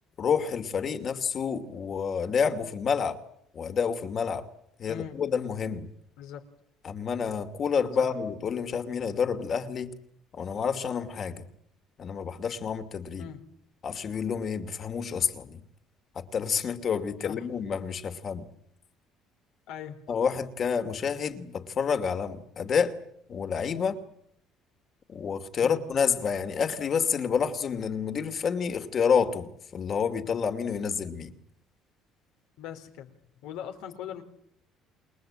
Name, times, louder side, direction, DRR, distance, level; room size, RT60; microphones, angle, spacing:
voice 1, 0.2-3.2 3.5-4.5 4.8-5.9 6.8-10.0 10.3-11.4 12.0-13.3 13.8-15.6 16.1-18.5 20.1-23.0 23.3-24.0 25.1-31.3, left 6 dB, 45° left, 2.6 m, -29 dB
voice 2, 4.9-5.2 6.2-6.4 8.0-8.1 13.2-13.4 17.2-17.5 19.7-20.0 25.6-25.8 32.6-33.2 33.4-34.2, left 9 dB, 85° left, 3.8 m, -40 dB
28.0 x 21.5 x 8.9 m
cardioid pair, 105°, 0 cm